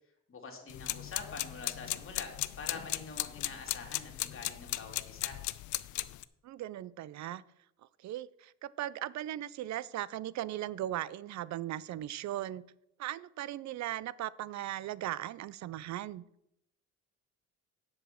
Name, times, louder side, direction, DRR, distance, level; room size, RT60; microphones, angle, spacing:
voice 1, 0.3-5.4, left 4 dB, 45° left, 2 dB, 2.7 m, -45 dB
sound 1, 0.7-6.2, left 15 dB, 75° left, 0.5 m, -37 dB
voice 2, 6.4-7.4 8.0-12.6 13.0-16.2, right 13 dB, 65° right, 20 dB, 0.5 m, -38 dB
7.8 x 7.2 x 6.4 m, 0.80 s
cardioid pair, 90°, 30 cm